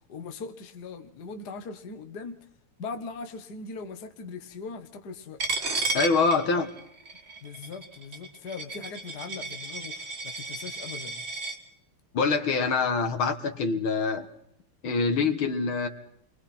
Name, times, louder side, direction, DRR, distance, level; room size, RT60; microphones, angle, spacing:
voice 1, 0.1-2.4 2.8-5.4 6.5-6.6 7.4-11.2, left 4 dB, 50° left, 6 dB, 1.9 m, -40 dB
Coin (dropping), 5.4-11.6, right 3 dB, 30° right, 1.8 m, -33 dB
voice 2, 5.9-6.7 12.1-14.3 14.8-15.9, left 4 dB, 70° left, 7 dB, 2.3 m, -25 dB
30.0 x 23.5 x 4.4 m, 0.72 s
omnidirectional pair, 2.4 m